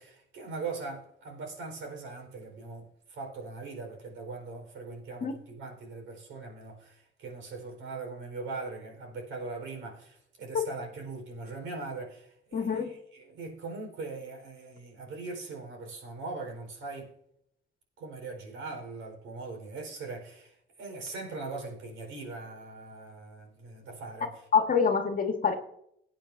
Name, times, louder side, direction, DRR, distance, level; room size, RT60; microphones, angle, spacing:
voice 1, 0.0-17.1 18.0-24.4, right 3 dB, 80° right, 4.4 m, -41 dB
voice 2, 12.5-12.9 24.5-25.6, left 6 dB, 45° left, 1.6 m, -25 dB
18.0 x 8.9 x 2.7 m
cardioid pair, 90°, 20 cm